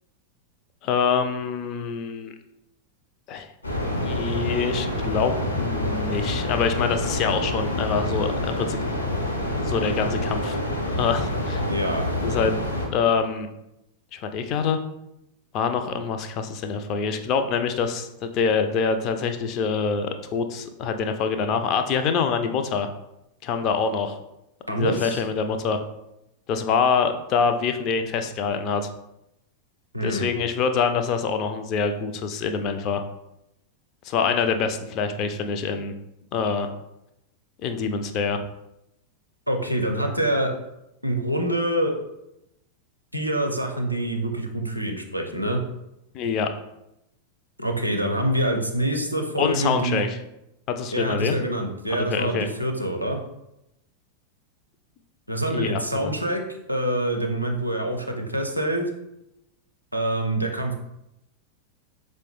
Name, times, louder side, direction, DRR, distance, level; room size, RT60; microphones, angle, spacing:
voice 1, 0.8-2.3 3.3-3.5 4.0-8.8 9.7-10.6 11.0-11.6 12.2-12.6 12.9-13.5 14.1-14.8 15.5-22.9 23.4-24.2 24.7-25.8 26.5-28.9 30.0-33.0 34.0-35.9 36.3-36.7 37.6-38.4 46.1-46.5 49.4-50.2 50.7-51.4 51.9-52.5 55.5-56.1, left 5 dB, 40° left, 7 dB, 0.3 m, -25 dB
sound 1, 3.6-12.9, left 1 dB, 80° left, 0.7 m, -27 dB
voice 2, 11.6-12.1 24.7-25.2 29.9-30.3 39.5-40.5 41.0-42.0 43.1-45.6 47.6-50.0 50.9-53.2 55.3-56.4 56.7-58.9 59.9-60.8, right 1 dB, 90° right, 2 dB, 0.5 m, -25 dB
4.4 x 2.1 x 3.0 m, 0.87 s
figure-of-eight pair, 90°, 0 cm